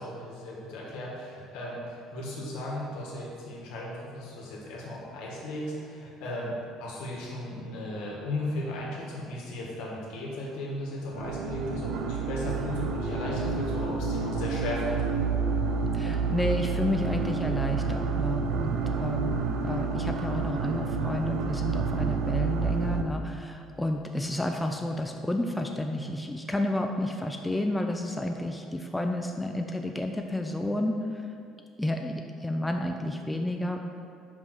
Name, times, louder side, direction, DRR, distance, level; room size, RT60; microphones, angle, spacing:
voice 1, 0.0-6.5 6.8-15.0, left 1 dB, 80° left, -3 dB, 1.8 m, -36 dB
sound 1, 11.1-23.0, right 5 dB, 65° right, 0.6 m, -29 dB
voice 2, 15.9-31.2 31.8-33.8, left 1 dB, 5° left, 3 dB, 0.4 m, -31 dB
5.5 x 5.1 x 6.0 m, 2.4 s
cardioid pair, 150°, 0 cm